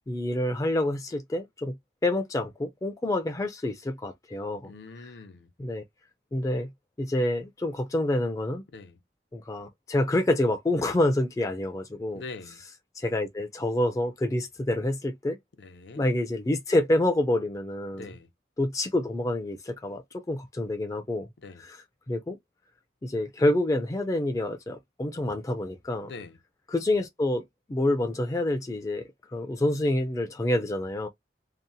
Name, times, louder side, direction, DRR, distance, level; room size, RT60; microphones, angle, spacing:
voice 1, 0.1-1.7 2.0-4.7 5.6-5.8 6.3-6.7 7.0-8.6 9.3-12.2 13.0-15.4 16.0-18.1 18.6-21.3 21.6-21.8 22.1-22.4 23.0-26.1 26.7-27.4 27.7-31.1, left 1 dB, 20° left, 0.3 m, -27 dB
voice 2, 4.6-5.5 8.7-9.0 12.1-12.6 15.6-16.1 17.9-18.3 21.4-21.6 26.0-26.4, left 3 dB, 80° left, 0.5 m, -43 dB
2.7 x 2.0 x 2.6 m
head